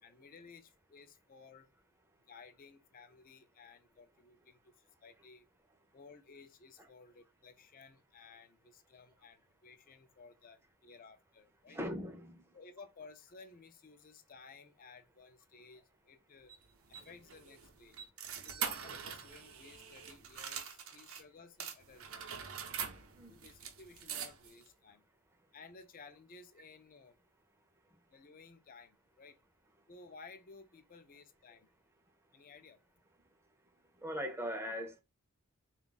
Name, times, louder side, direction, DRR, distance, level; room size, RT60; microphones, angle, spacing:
voice 1, 0.0-1.7 2.3-4.7 5.0-5.5 5.9-11.8 12.5-16.5 16.9-18.0 18.4-22.3 23.3-25.0 25.5-27.2 28.1-29.4 29.9-31.7 32.3-32.8, left 4 dB, 40° left, 0.5 m, -56 dB
voice 2, 11.7-12.4 23.2-23.3 34.0-35.0, equal, 10° right, 0.6 m, -40 dB
sound 1, 16.5-21.2 21.6-24.7, right 7 dB, 65° right, 0.7 m, -44 dB
3.9 x 2.3 x 3.8 m
head